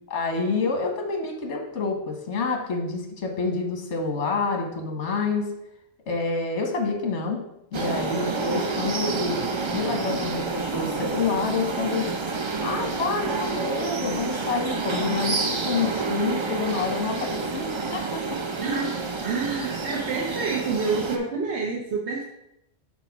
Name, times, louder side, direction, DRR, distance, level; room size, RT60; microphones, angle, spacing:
voice 1, 0.1-5.5 6.1-7.4 7.7-9.4 9.7-12.1 12.6-18.4, left 4 dB, 85° left, 3 dB, 1.3 m, -28 dB
sound 1, 7.7-21.2, right 4 dB, 40° right, 0.4 m, -29 dB
voice 2, 18.6-22.2, right 4 dB, 75° right, -2 dB, 1.1 m, -28 dB
4.6 x 4.0 x 5.7 m, 0.82 s
omnidirectional pair, 1.2 m